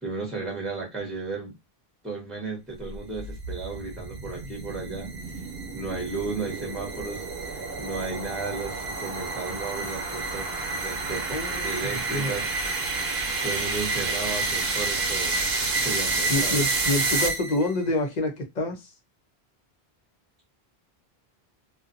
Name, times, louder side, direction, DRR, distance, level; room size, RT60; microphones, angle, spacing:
voice 1, 0.0-1.5 2.0-5.1 5.7-10.5 10.8-12.4 13.4-15.4 15.7-16.6, right 3 dB, ahead, 1.0 m, -34 dB
sound 1, 2.9-17.8, right 3 dB, 70° right, 1.0 m, -29 dB
voice 2, 11.3-12.3 16.3-18.8, left 1 dB, 45° left, 0.8 m, -27 dB
2.6 x 2.4 x 2.5 m
omnidirectional pair, 1.0 m